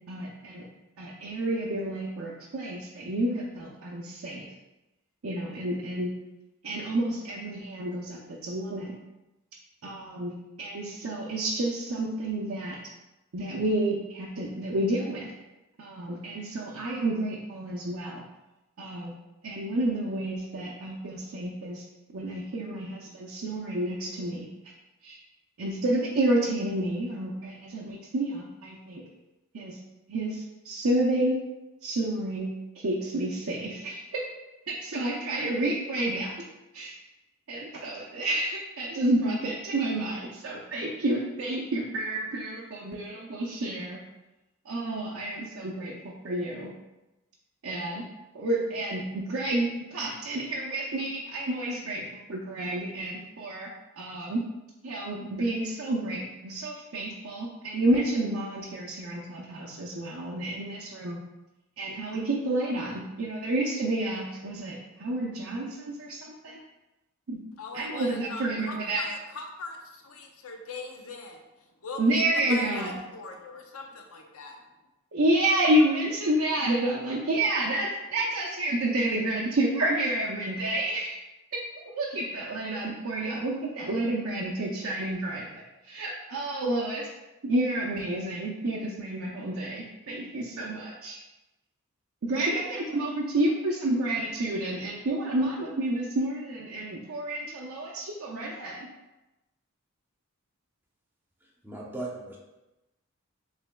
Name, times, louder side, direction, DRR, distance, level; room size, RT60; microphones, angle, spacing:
voice 1, 0.1-0.6 1.0-4.5 5.2-6.1 6.6-9.0 9.8-12.8 13.3-15.3 15.8-18.3 18.8-19.1 19.4-21.8 22.1-24.5 25.0-25.2 25.6-29.0 29.5-29.8 30.1-31.4 31.8-34.2 34.7-36.3 36.7-36.9 37.5-44.0 44.6-46.7 47.6-48.0 48.3-54.4 54.8-61.2 61.8-66.6 67.3-67.4 67.7-69.1 72.0-72.9 75.1-81.2 81.5-87.1 87.4-91.2 92.2-98.9, right 1 dB, 75° right, -4 dB, 0.6 m, -30 dB
voice 2, 67.6-72.0 72.3-74.6, left 3 dB, 80° left, 3 dB, 0.7 m, -41 dB
voice 3, 101.4-102.4, right 2 dB, 10° right, -3 dB, 0.8 m, -38 dB
6.9 x 3.3 x 2.2 m, 1.0 s
head